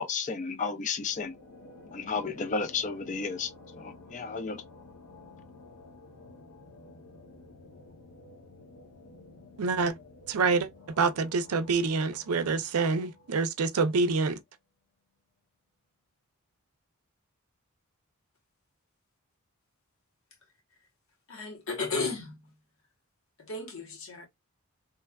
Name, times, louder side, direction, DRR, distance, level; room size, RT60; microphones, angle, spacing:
voice 1, 0.0-1.3 1.9-4.6, left 5 dB, 35° left, 0.4 m, -33 dB
sound 1, 0.9-14.1, left 2 dB, 85° left, 0.7 m, -52 dB
voice 2, 9.6-9.9 10.3-10.7 11.0-14.4, right 4 dB, 80° right, 0.5 m, -26 dB
voice 3, 21.3-22.5 23.4-24.3, left 3 dB, 65° left, 1.0 m, -34 dB
3.1 x 2.2 x 2.2 m
head